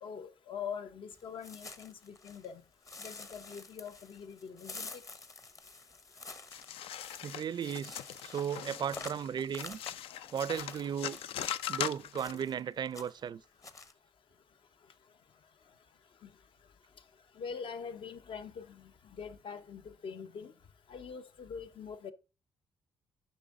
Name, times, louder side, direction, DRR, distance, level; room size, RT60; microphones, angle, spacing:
voice 1, 0.0-2.6 3.0-5.0 16.2-16.3 17.4-20.5 20.9-22.1, left 6 dB, 65° left, 0.9 m, -44 dB
sound 1, 1.1-2.5 2.8-11.7 12.2-12.6 12.8-13.3 13.6-13.9, left 3 dB, 35° left, 1.0 m, -49 dB
sound 2, 6.5-12.4, left 10 dB, 85° left, 0.4 m, -40 dB
voice 2, 7.2-8.0 8.2-9.8 10.3-11.2 11.7-13.4, right 8 dB, 50° right, 0.4 m, -35 dB
7.3 x 5.3 x 3.7 m
cardioid pair, 75°, 9 cm